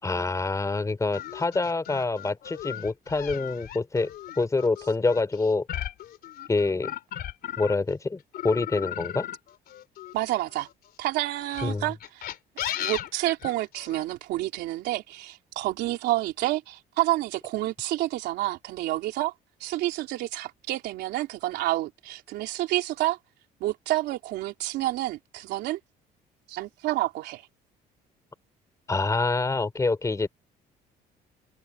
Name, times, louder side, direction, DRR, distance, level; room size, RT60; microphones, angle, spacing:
voice 1, 0.0-5.7 6.5-6.9 7.6-9.3 11.6-11.8 28.9-30.3, left 3 dB, 20° left, 3.4 m, -26 dB
sound 1, 1.1-7.9 8.3-10.7 11.4-14.0, left 11 dB, 65° left, 3.2 m, -36 dB
voice 2, 10.1-10.7 11.0-12.3 12.8-19.3 19.6-23.2 23.6-25.8 26.5-27.5, right 16 dB, 85° right, 3.5 m, -29 dB
open air
cardioid pair, 110°, 17 cm